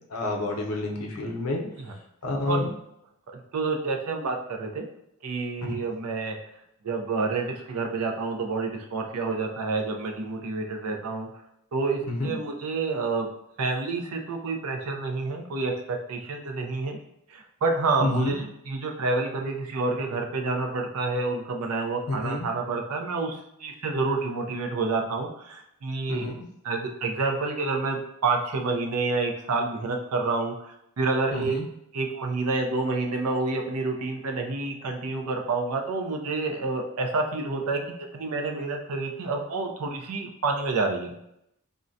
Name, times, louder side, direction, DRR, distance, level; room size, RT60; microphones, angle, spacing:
voice 1, 0.1-1.6 2.2-2.7 5.6-5.7 12.1-12.3 18.0-18.4 22.1-22.5 26.1-26.5 31.3-31.7, left 2 dB, 80° left, 0 dB, 0.6 m, -29 dB
voice 2, 3.3-4.8 5.2-6.4 6.8-11.3 11.7-13.3 13.6-17.0 17.3-26.3 26.6-31.5 31.9-41.1, right 3 dB, 80° right, 3 dB, 0.5 m, -28 dB
3.6 x 2.1 x 2.6 m, 0.78 s
head